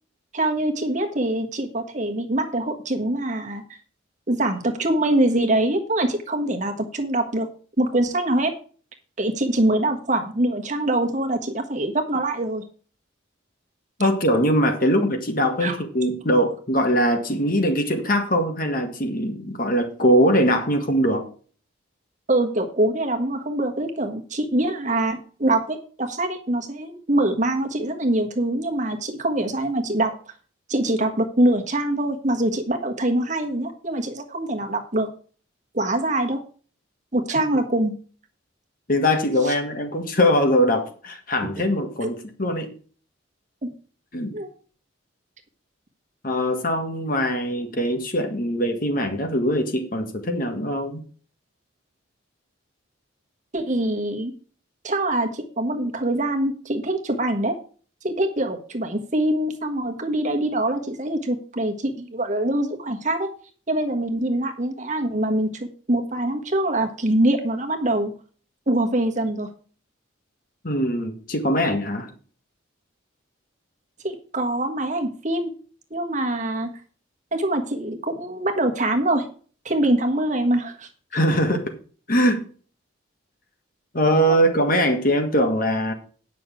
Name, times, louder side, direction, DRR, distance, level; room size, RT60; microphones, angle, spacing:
voice 1, 0.3-3.8 4.3-7.5 7.8-8.5 9.2-12.6 14.8-14.9 15.6-15.8 22.3-30.1 30.7-35.1 35.7-36.4 37.1-37.9 39.4-39.5 42.0-42.1 43.6-43.7 44.3-44.5 53.5-54.3 54.8-57.6 58.0-63.3 63.7-68.1 68.7-69.5 74.0-75.5 75.9-76.7 77.3-79.2 79.6-80.9, right 1 dB, 35° right, 4 dB, 1.4 m, -24 dB
voice 2, 14.0-21.3 38.9-42.7 44.1-44.3 46.2-51.0 70.6-72.1 81.1-81.7 82.1-82.4 83.9-85.9, equal, 45° left, 5 dB, 1.7 m, -22 dB
9.7 x 6.2 x 6.1 m, 0.41 s
head